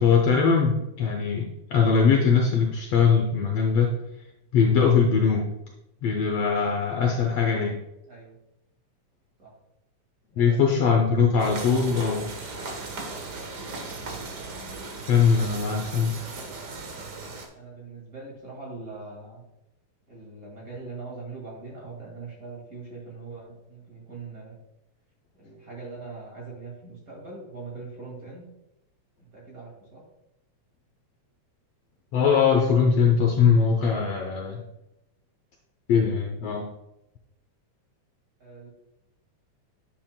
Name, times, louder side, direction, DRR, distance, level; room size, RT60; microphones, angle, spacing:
voice 1, 0.0-3.9 4.5-5.5 6.0-7.8 10.4-12.3 15.1-16.1 32.1-34.6 35.9-36.7, left 6 dB, 70° left, 1 dB, 1.6 m, -21 dB
voice 2, 10.3-11.6 14.0-14.3 16.3-17.0 17.5-19.4 20.1-24.6 25.4-28.5 29.2-30.0 38.4-38.7, right 3 dB, 30° right, -3 dB, 2.1 m, -42 dB
sound 1, 11.4-17.5, right 3 dB, 70° right, 0.9 m, -37 dB
10.0 x 7.2 x 2.2 m, 0.86 s
omnidirectional pair, 3.5 m